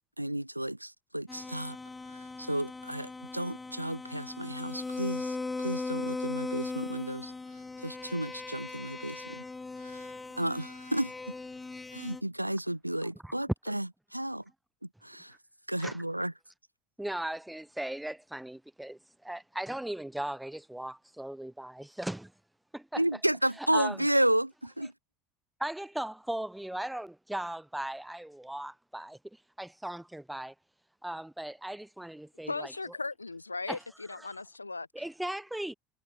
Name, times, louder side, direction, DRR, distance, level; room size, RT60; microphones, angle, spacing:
voice 1, 0.2-1.8 2.1-7.3 7.8-9.4 9.8-10.1 10.4-11.1 11.9-14.4 15.0-15.3 15.7-16.3 23.0-24.9, right 1 dB, 90° right, 0.4 m, -32 dB
sound 1, 1.3-12.2, left 3 dB, 15° left, 0.6 m, -39 dB
voice 2, 17.0-22.3 22.7-23.0 23.6-24.0 25.6-30.5 31.0-32.7 33.7-33.8 34.1-34.4 34.9-35.7, right 1 dB, 5° right, 2.3 m, -38 dB
voice 3, 32.5-34.9, left 3 dB, 85° left, 0.5 m, -37 dB
figure-of-eight pair, 70°, 0 cm